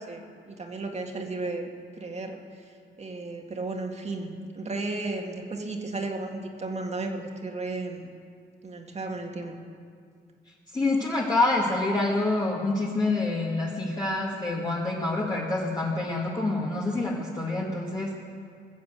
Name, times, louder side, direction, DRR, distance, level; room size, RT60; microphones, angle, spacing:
voice 1, 0.1-1.7 2.0-2.4 3.0-8.1 8.6-9.6, right 2 dB, 35° right, 2 dB, 2.0 m, -34 dB
voice 2, 10.7-18.1, left 2 dB, 20° left, -5 dB, 2.1 m, -27 dB
20.5 x 7.4 x 7.7 m, 2.2 s
cardioid pair, 90°, 20 cm